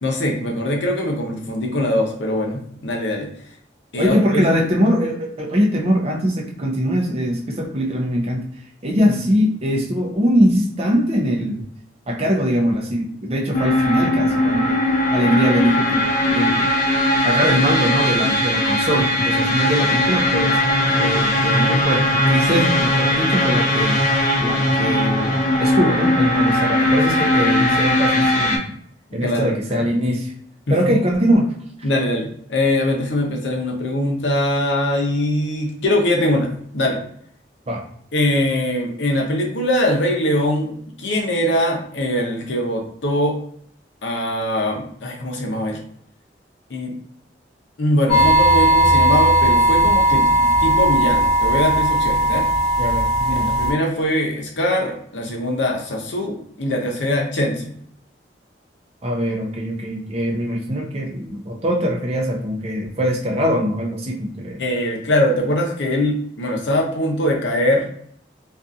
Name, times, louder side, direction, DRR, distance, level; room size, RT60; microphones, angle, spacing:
voice 1, 0.0-3.3 3.9-4.7 9.1-9.2 29.1-29.8 30.7-31.0 31.8-37.0 38.1-40.7 41.0-43.4 44.0-45.8 46.7-46.9 47.8-52.4 53.3-57.8 64.6-67.9, left 1 dB, 80° left, 1 dB, 0.7 m, -22 dB
voice 2, 4.0-8.4 8.8-11.6 12.1-14.8 15.1-16.7 17.2-20.6 20.9-24.0 24.4-28.7 29.1-30.3 30.7-31.5 37.7-37.8 52.8-53.6 59.0-64.6, equal, 35° right, 0 dB, 0.5 m, -21 dB
sound 1, 13.5-28.6, left 1 dB, 45° left, 0.4 m, -19 dB
sound 2, 48.1-53.7, right 1 dB, ahead, 1.4 m, -16 dB
2.6 x 2.4 x 2.3 m, 0.62 s
head